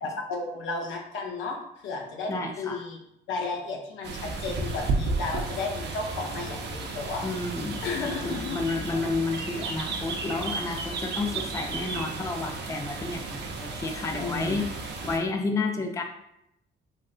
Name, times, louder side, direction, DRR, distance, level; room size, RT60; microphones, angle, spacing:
voice 1, 0.0-1.6 1.8-2.3 2.6-3.0 3.3-7.2 7.8-8.6 14.1-14.6, left 3 dB, 80° left, 1 dB, 0.7 m, -33 dB
voice 2, 2.3-2.8 7.2-16.0, left 3 dB, 15° left, 3 dB, 0.4 m, -31 dB
sound 1, 4.0-15.2, right 3 dB, 60° right, 0.6 m, -33 dB
3.6 x 2.7 x 2.4 m, 0.81 s
cardioid pair, 90°, 20 cm